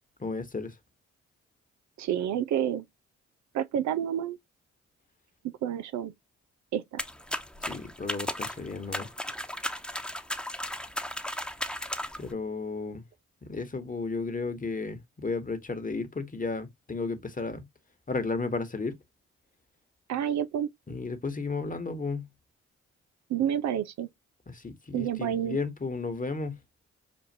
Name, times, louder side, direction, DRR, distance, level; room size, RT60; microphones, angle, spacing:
voice 1, 0.2-0.7 7.6-9.1 12.2-13.0 13.5-17.6 18.1-19.0 20.9-22.3 24.5-26.6, left 3 dB, 25° left, 1.3 m, -33 dB
voice 2, 2.0-2.8 3.5-4.4 5.6-6.1 6.7-7.0 20.1-20.7 23.3-24.1 24.9-25.6, right 10 dB, 70° right, 0.6 m, -29 dB
sound 1, 7.0-12.3, left 1 dB, 5° left, 1.0 m, -35 dB
6.3 x 2.5 x 2.7 m
hypercardioid pair, 45°, 30 cm